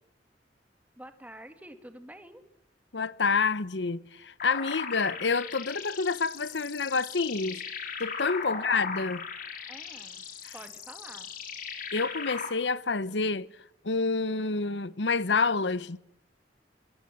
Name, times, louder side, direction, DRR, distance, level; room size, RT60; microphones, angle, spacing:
voice 1, 1.0-2.4 8.5-8.6 9.7-10.3 10.5-11.3, right 1 dB, 10° right, 2.5 m, -48 dB
voice 2, 2.9-7.6 8.0-9.3 10.4-10.5 11.9-13.5 13.8-16.0, left 4 dB, 85° left, 1.0 m, -28 dB
sound 1, 4.4-12.5, left 5 dB, 55° left, 4.9 m, -38 dB
24.5 x 22.0 x 9.1 m
head